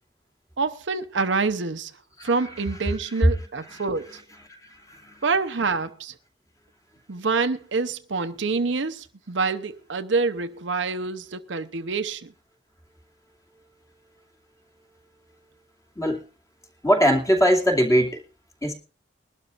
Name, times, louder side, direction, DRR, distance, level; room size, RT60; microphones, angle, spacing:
voice 1, 0.6-1.9 2.2-4.2 5.2-6.1 7.1-12.3, right 4 dB, 75° right, 0.8 m, -26 dB
voice 2, 16.8-18.2 18.6-18.7, equal, 15° left, 2.5 m, -20 dB
21.5 x 12.0 x 2.5 m
head